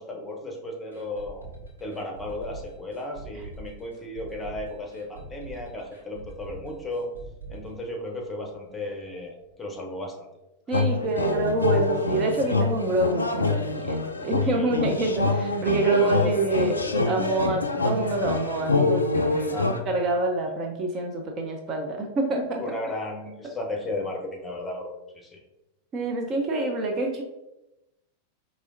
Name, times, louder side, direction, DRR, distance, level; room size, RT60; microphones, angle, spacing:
voice 1, 0.0-1.5 1.8-7.1 7.5-10.3 10.7-10.9 14.4-15.0 15.9-16.3 16.6-17.1 19.5-19.8 22.6-25.4, left 2 dB, 15° left, 0 dB, 0.9 m, -35 dB
sound 1, 0.9-8.7 8.9-9.0 9.4-9.5, right 2 dB, 80° right, 1.0 m, -43 dB
sound 2, 10.7-19.8, left 3 dB, 80° left, 0.3 m, -26 dB
voice 2, 10.7-16.7 17.1-19.6 19.9-22.6 25.9-27.2, right 2 dB, 30° right, 1 dB, 0.5 m, -26 dB
4.8 x 3.0 x 2.6 m, 0.94 s
figure-of-eight pair, 90°, 0 cm